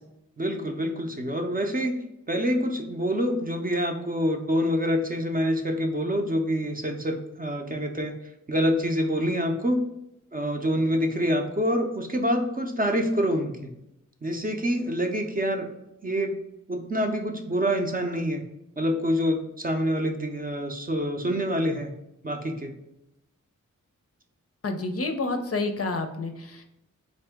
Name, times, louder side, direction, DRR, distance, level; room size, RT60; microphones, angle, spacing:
voice 1, 0.4-2.0 2.3-8.1 8.5-9.8 10.3-13.7 14.2-15.7 16.0-16.3 16.7-18.4 18.8-21.9 22.2-22.7, equal, 30° right, 3 dB, 0.6 m, -26 dB
voice 2, 24.6-26.6, left 3 dB, 50° left, 5 dB, 0.5 m, -29 dB
3.7 x 2.6 x 3.5 m, 0.87 s
wide cardioid pair, 80°, 31 cm